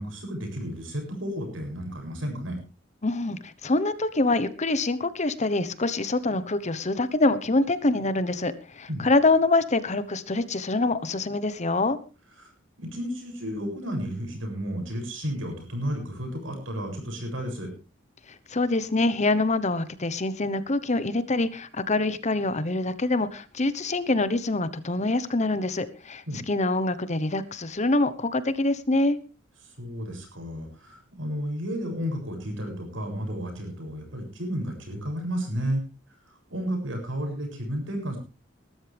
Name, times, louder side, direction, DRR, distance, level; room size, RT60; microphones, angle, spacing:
voice 1, 0.0-2.6 8.9-9.1 12.4-12.5 12.8-17.7 26.3-26.4 29.6-35.9 36.3-38.2, equal, 85° right, 3 dB, 7.3 m, -32 dB
voice 2, 3.0-12.0 18.5-29.2, left 2 dB, 35° left, 13 dB, 1.1 m, -25 dB
20.0 x 13.0 x 3.5 m, 0.33 s
head